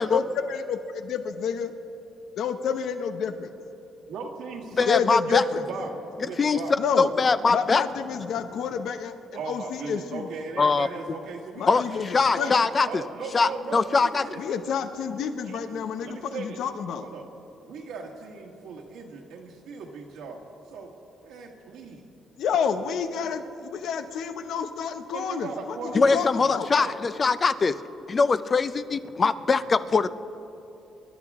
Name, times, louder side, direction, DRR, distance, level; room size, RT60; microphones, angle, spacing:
voice 1, 0.1-1.7 2.4-3.5 4.9-5.6 6.8-7.1 7.5-9.1 9.5-10.3 11.6-12.6 14.4-17.1 22.4-26.7, left 7 dB, 75° left, 9 dB, 0.8 m, -29 dB
voice 2, 4.1-5.0 5.3-6.8 9.3-12.1 12.4-14.8 15.1-16.6 17.0-17.3 17.6-20.4 20.7-20.9 21.2-22.1 25.1-26.9, right 4 dB, 90° right, -1 dB, 1.6 m, -38 dB
voice 3, 4.8-5.4 6.4-6.6 7.0-7.8 10.6-10.9 11.7-11.8 12.1-13.0 13.3-14.3 25.9-27.7 28.1-30.1, left 4 dB, 35° left, 13 dB, 0.6 m, -22 dB
26.0 x 11.0 x 3.6 m, 2.9 s
cardioid pair, 90°, 0 cm